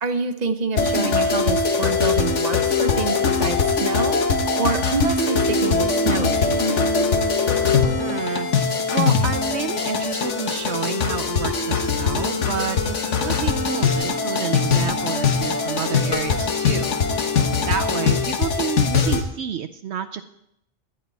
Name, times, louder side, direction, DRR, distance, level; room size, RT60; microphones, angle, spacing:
voice 1, 0.0-6.8 9.8-9.9, right 4 dB, 40° right, 7 dB, 1.0 m, -27 dB
sound 1, 0.8-19.2, left 4 dB, 80° left, 1.5 m, -22 dB
sound 2, 5.6-18.2, left 5 dB, 25° left, 0.9 m, -32 dB
voice 2, 8.0-17.0 17.7-20.2, right 8 dB, 70° right, 9 dB, 0.9 m, -30 dB
18.0 x 11.0 x 4.1 m, 0.79 s
omnidirectional pair, 1.2 m